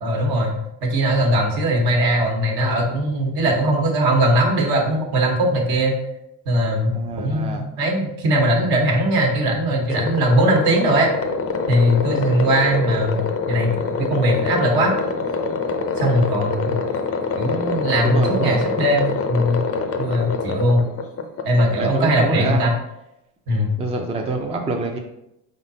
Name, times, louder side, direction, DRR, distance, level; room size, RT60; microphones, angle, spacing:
voice 1, 0.0-6.0 6.4-11.1 11.7-13.2 13.5-14.9 16.0-16.8 17.4-19.6 20.0-20.9 21.4-22.7 23.5-23.7, right 1 dB, 65° right, 1 dB, 1.3 m, -20 dB
voice 2, 6.9-7.6 18.0-18.7 21.8-22.7 23.8-25.0, right 4 dB, 15° right, 2 dB, 0.5 m, -25 dB
sound 1, 9.9-22.5, left 4 dB, 35° left, 0.6 m, -25 dB
4.7 x 3.7 x 2.7 m, 0.87 s
supercardioid pair, 90°, 41 cm